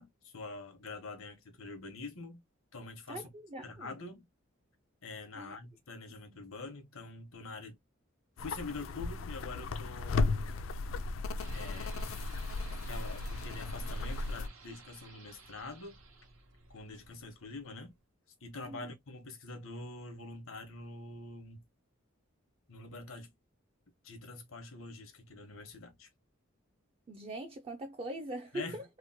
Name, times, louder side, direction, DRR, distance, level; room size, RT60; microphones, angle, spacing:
voice 1, 0.0-2.4 2.7-3.3 3.6-4.2 5.0-7.8 8.4-10.6 11.5-12.0 12.7-16.0 16.7-17.9 18.4-21.6 22.7-23.3 24.0-26.1 28.5-28.8, left 3 dB, 90° left, 0.9 m, -45 dB
voice 2, 3.1-4.0 5.3-5.6 18.6-18.9 27.1-28.8, right 1 dB, 30° right, 0.3 m, -42 dB
sound 1, 8.4-14.5, left 3 dB, 70° left, 0.3 m, -35 dB
sound 2, 11.4-18.0, right 4 dB, 85° right, 0.9 m, -55 dB
2.9 x 2.1 x 2.6 m
head